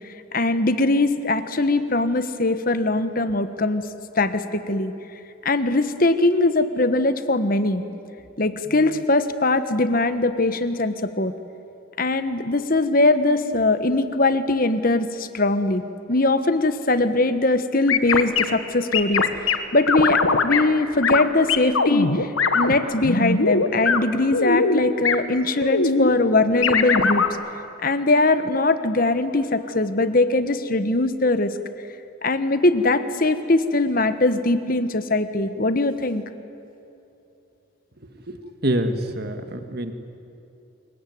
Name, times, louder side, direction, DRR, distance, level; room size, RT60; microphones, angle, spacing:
voice 1, 0.3-3.9 4.2-4.9 5.4-7.8 8.4-11.3 12.0-15.8 16.1-22.3 22.5-27.2 27.8-31.6 32.2-36.2, left 2 dB, 45° left, 11 dB, 1.2 m, -21 dB
sound 1, 17.9-18.4 18.9-19.6 19.9-20.6 21.0-21.2 21.5-22.7 23.0-24.0 24.3-24.8 25.0-25.1 25.6-26.1 26.6-27.3, left 4 dB, 80° left, 1.5 m, -20 dB
voice 2, 38.6-39.9, right 1 dB, 50° right, 7 dB, 1.8 m, -25 dB
27.0 x 22.5 x 9.5 m, 2.8 s
head